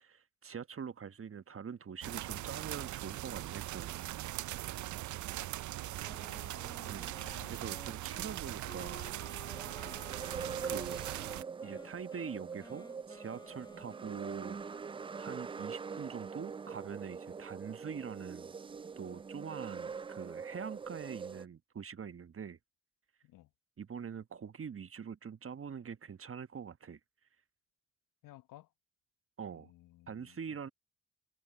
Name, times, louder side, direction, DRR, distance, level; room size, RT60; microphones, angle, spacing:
voice 1, 0.0-4.0 6.9-9.1 10.6-11.1 11.6-14.8 15.2-18.5 19.0-22.6 23.8-27.0 29.4-29.7 30.1-30.7, right 7 dB, 40° right, 1.2 m, -44 dB
sound 1, 2.0-11.4, right 15 dB, 60° right, 0.6 m, -40 dB
Wind instrument woodwind instrument, 6.0-14.4, left 2 dB, 15° left, 1.1 m, -54 dB
voice 2, 6.1-6.4 7.2-7.9 8.8-9.0 9.8-10.0 23.2-23.5 28.2-28.7 29.5-30.4, left 16 dB, 75° left, 1.1 m, -58 dB
sound 2, 9.5-21.4, right 5 dB, 15° right, 0.3 m, -43 dB
hypercardioid pair, 40°, 33 cm